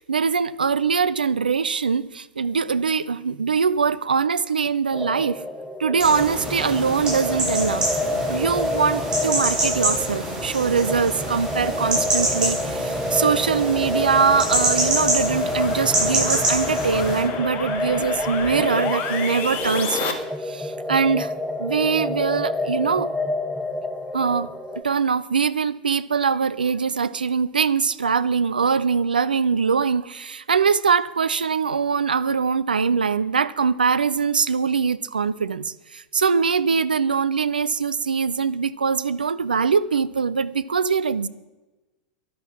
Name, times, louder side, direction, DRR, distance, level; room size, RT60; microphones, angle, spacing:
voice 1, 0.0-5.4 5.8-7.9 8.3-20.2 20.5-21.3 21.6-23.1 24.1-24.5 24.8-41.3, right 5 dB, 80° right, 0.6 m, -22 dB
sound 1, 4.9-24.8, left 2 dB, 5° left, 1.1 m, -29 dB
sound 2, 6.0-17.2, right 2 dB, 15° right, 6.8 m, -26 dB
sound 3, 13.6-20.1, left 5 dB, 40° left, 2.0 m, -32 dB
12.0 x 11.5 x 7.3 m
figure-of-eight pair, 95°, 5 cm